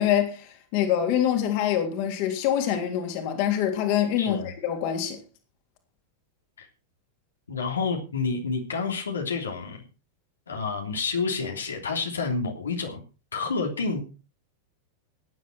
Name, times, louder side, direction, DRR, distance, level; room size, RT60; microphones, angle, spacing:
voice 1, 0.0-5.2, left 10 dB, 45° left, 3.4 m, -25 dB
voice 2, 4.2-4.5 6.6-6.7 7.5-9.9 10.5-13.0 13.3-14.0, left 4 dB, 70° left, 3.2 m, -29 dB
17.5 x 10.5 x 4.5 m
figure-of-eight pair, 90°, 0 cm